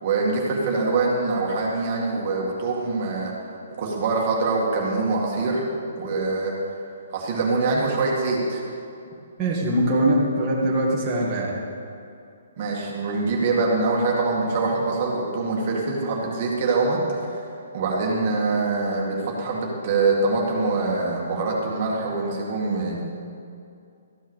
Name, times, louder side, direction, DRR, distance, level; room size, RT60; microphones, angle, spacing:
voice 1, 0.0-3.3 3.8-5.7 6.0-6.6 7.1-8.6 12.6-17.5 17.7-23.0, right 3 dB, 35° right, -3 dB, 2.0 m, -24 dB
voice 2, 9.4-11.5, right 1 dB, 15° right, -7 dB, 2.0 m, -22 dB
14.0 x 8.1 x 6.4 m, 2.5 s
hypercardioid pair, 165°, 0 cm